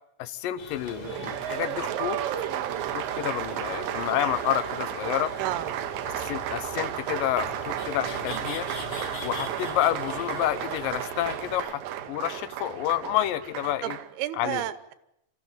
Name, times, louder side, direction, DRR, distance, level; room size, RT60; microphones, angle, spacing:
voice 1, 0.2-2.2 2.9-5.3 6.2-8.7 9.2-11.8 12.1-14.0 14.4-14.6, left 13 dB, 70° left, 13 dB, 2.5 m, -29 dB
sound 1, 0.6-11.6, left 4 dB, 55° left, 4.0 m, -42 dB
Applause, 0.9-14.1, right 11 dB, 70° right, 2.5 m, -33 dB
sound 2, 5.3-13.9, right 3 dB, 55° right, 8.2 m, -53 dB
voice 2, 5.4-5.8 13.8-14.9, right 13 dB, 90° right, 14 dB, 3.0 m, -32 dB
26.0 x 14.5 x 9.0 m, 0.82 s
omnidirectional pair, 4.4 m